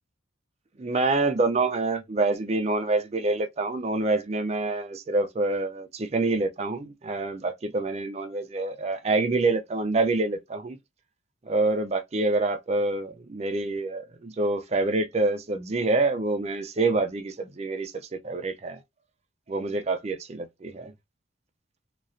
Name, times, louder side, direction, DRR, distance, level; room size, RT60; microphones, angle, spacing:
voice 1, 0.8-10.8 11.4-18.8 19.5-20.9, right 3 dB, 35° right, 0.4 m, -26 dB
3.0 x 2.4 x 2.5 m
head